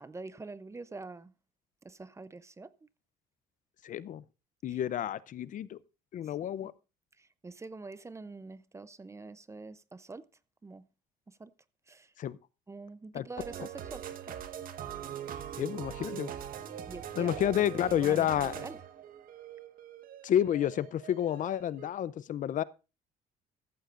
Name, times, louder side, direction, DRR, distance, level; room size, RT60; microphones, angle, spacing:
voice 1, 0.0-1.3 1.8-2.7 4.7-4.8 6.6-6.7 7.4-10.3 10.6-10.9 11.4-11.5 11.9-12.1 12.7-14.4 16.9-17.6 18.0-18.8, right 3 dB, 15° right, 0.6 m, -45 dB
voice 2, 3.8-4.2 4.6-5.8 6.1-6.7 12.2-12.4 13.1-13.3 15.6-16.3 17.2-18.5 20.2-22.6, left 10 dB, 50° left, 0.6 m, -30 dB
sound 1, 13.4-21.9, right 9 dB, 55° right, 1.5 m, -42 dB
14.5 x 14.0 x 2.5 m
cardioid pair, 105°, 17 cm